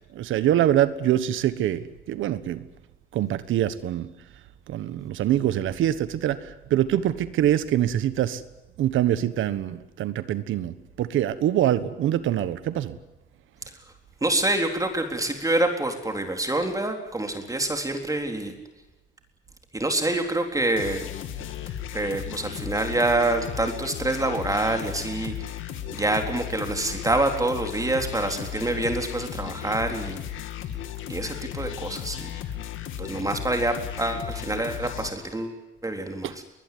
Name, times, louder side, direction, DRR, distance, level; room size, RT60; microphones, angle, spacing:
voice 1, 0.1-2.7 3.1-4.1 4.7-8.4 8.8-13.0 36.2-36.3, right 11 dB, 80° right, 14 dB, 1.4 m, -24 dB
voice 2, 14.2-18.5 19.7-21.1 21.4-21.5 21.9-25.5 25.9-30.2 31.1-32.3 33.0-36.4, right 2 dB, 15° right, 5 dB, 3.8 m, -26 dB
sound 1, 20.8-35.1, left 11 dB, 80° left, 2.3 m, -35 dB
23.0 x 20.0 x 9.4 m, 1.0 s
cardioid pair, 90°, 20 cm